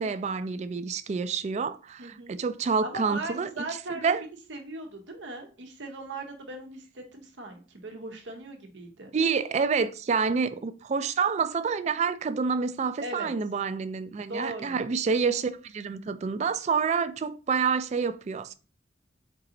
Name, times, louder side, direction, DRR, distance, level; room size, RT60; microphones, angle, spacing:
voice 1, 0.0-3.6 4.0-4.2 9.1-18.5, right 5 dB, 40° right, 0.3 m, -28 dB
voice 2, 2.0-2.3 2.8-9.1 13.0-13.3 14.3-14.8, right 2 dB, 85° right, 1.0 m, -38 dB
4.6 x 2.9 x 3.8 m
head